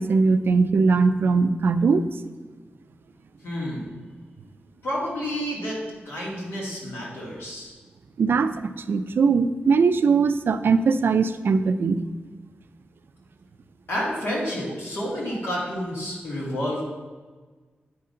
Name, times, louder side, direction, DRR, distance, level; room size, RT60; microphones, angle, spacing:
voice 1, 0.0-2.1 8.2-8.5 8.9-12.0, right 4 dB, 65° right, 10 dB, 0.4 m, -20 dB
voice 2, 3.4-3.9 4.8-5.8 6.1-7.7 13.9-16.8, equal, 80° left, -6 dB, 2.5 m, -29 dB
8.6 x 3.8 x 5.5 m, 1.4 s
wide cardioid pair, 145°, 4 cm